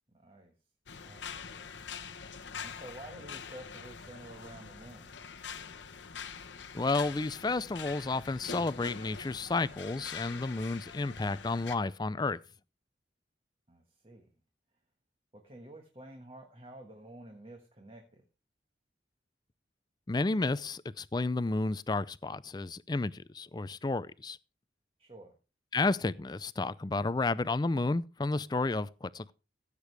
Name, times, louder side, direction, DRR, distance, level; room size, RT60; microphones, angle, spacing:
voice 1, 0.1-0.5 1.0-1.8 2.6-5.1 13.7-14.3 15.3-18.2 25.0-25.4, right 1 dB, 30° right, 1.5 m, -50 dB
sound 1, 0.9-11.8, left 6 dB, 90° left, 1.0 m, -44 dB
voice 2, 6.7-12.4 20.1-24.4 25.7-29.3, left 3 dB, 25° left, 0.4 m, -31 dB
15.5 x 8.3 x 3.4 m
head